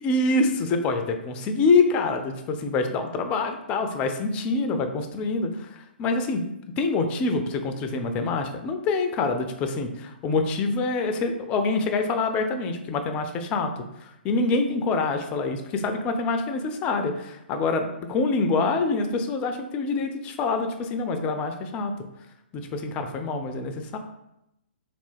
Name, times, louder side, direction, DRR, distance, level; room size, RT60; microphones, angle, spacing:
voice 1, 0.0-6.5 6.8-13.7 14.0-21.9 22.5-24.0, left 3 dB, 20° left, 6 dB, 0.3 m, -26 dB
3.2 x 2.4 x 3.4 m, 0.86 s
figure-of-eight pair, 120°, 6 cm